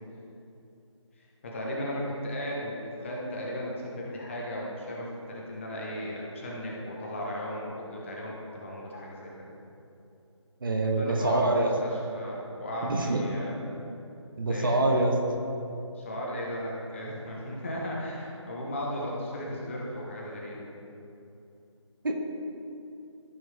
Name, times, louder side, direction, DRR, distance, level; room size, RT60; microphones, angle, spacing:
voice 1, 1.4-9.3 10.8-13.6 14.5-14.7 15.9-20.7, equal, 25° left, -3 dB, 1.2 m, -35 dB
voice 2, 10.6-11.7 12.8-13.3 14.4-15.1 22.0-22.2, right 2 dB, 45° right, 2 dB, 0.9 m, -25 dB
14.0 x 6.1 x 3.5 m, 2.8 s
figure-of-eight pair, 160°, 16 cm